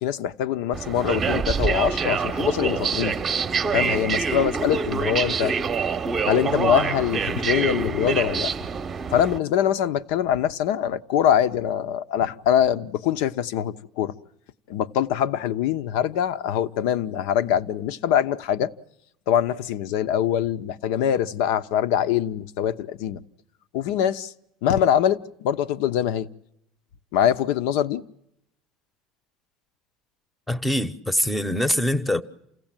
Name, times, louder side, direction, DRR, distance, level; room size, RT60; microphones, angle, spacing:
voice 1, 0.0-3.2 3.7-5.5 6.3-8.5 9.1-14.1 14.7-18.7 19.3-23.2 23.7-24.3 24.6-26.3 27.1-28.0, left 9 dB, 80° left, 0.9 m, -23 dB
sound 1, 0.7-9.4, right 5 dB, 20° right, 0.8 m, -26 dB
voice 2, 30.5-32.2, left 1 dB, 5° left, 0.8 m, -23 dB
28.5 x 16.5 x 9.0 m
cardioid pair, 165°, 0 cm